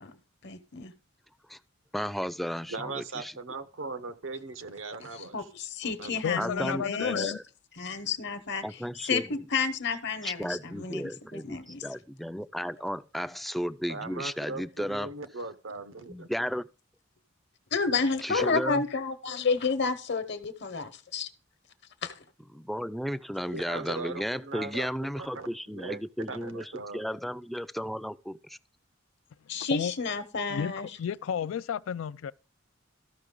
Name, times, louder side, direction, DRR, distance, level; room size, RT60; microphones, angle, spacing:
voice 1, 0.4-0.9 5.3-7.3 7.8-8.6 9.0-11.8 17.7-21.3 22.0-22.1 29.5-30.9, left 4 dB, 60° left, 1.0 m, -30 dB
voice 2, 1.9-3.3 6.4-7.4 8.6-9.3 10.2-15.1 16.1-16.7 18.2-18.8 22.5-28.6, equal, ahead, 0.3 m, -34 dB
voice 3, 2.7-5.5 5.8-6.2 13.9-16.3 23.5-24.9 25.2-26.0 26.3-27.0, right 3 dB, 80° right, 0.9 m, -39 dB
voice 4, 6.2-7.4 29.7-29.9 30.5-30.7 31.0-32.3, left 7 dB, 85° left, 0.3 m, -31 dB
13.5 x 5.8 x 3.8 m
head